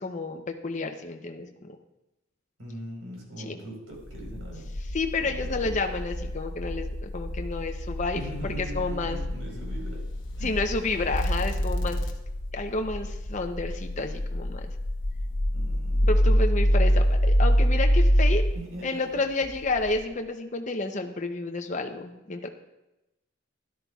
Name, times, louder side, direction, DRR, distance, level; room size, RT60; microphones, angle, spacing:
voice 1, 0.0-1.8 3.4-3.6 4.9-9.2 10.4-12.0 12.5-14.7 16.0-18.4 18.8-22.5, left 3 dB, 35° left, 5 dB, 0.6 m, -30 dB
voice 2, 2.6-4.7 5.2-5.7 8.1-10.0 10.4-10.5 15.5-16.4 18.5-19.2, right 1 dB, 80° right, -1 dB, 4.1 m, -41 dB
sound 1, 4.0-18.5 19.4-20.0, equal, 60° left, 1.0 m, -26 dB
13.0 x 11.5 x 2.3 m, 0.95 s
head